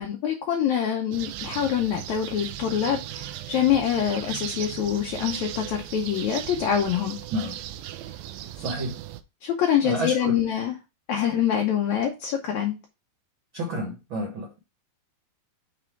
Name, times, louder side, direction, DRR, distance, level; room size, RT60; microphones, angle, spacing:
voice 1, 0.0-7.2 9.4-10.8 11.1-12.8, left 9 dB, 75° left, 1.7 m, -25 dB
sound 1, 1.1-9.2, right 13 dB, 90° right, 2.4 m, -37 dB
voice 2, 8.5-9.0 9.8-10.4 13.5-14.6, right 1 dB, 65° right, 1.2 m, -30 dB
7.4 x 3.4 x 4.5 m
omnidirectional pair, 4.2 m